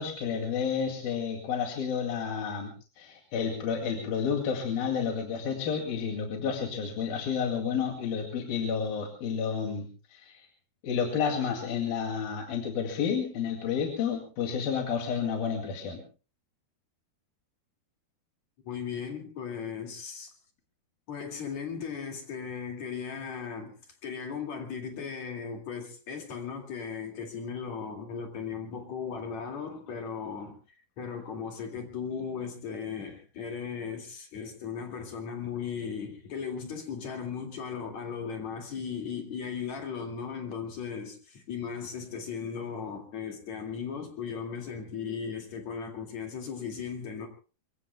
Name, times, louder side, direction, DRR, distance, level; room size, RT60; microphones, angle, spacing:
voice 1, 0.0-2.7 3.0-10.5 10.8-16.0, left 6 dB, 65° left, 3.9 m, -30 dB
voice 2, 18.6-20.3 21.1-30.6 31.0-47.3, left 6 dB, 50° left, 3.1 m, -37 dB
26.5 x 23.5 x 2.3 m
omnidirectional pair, 4.8 m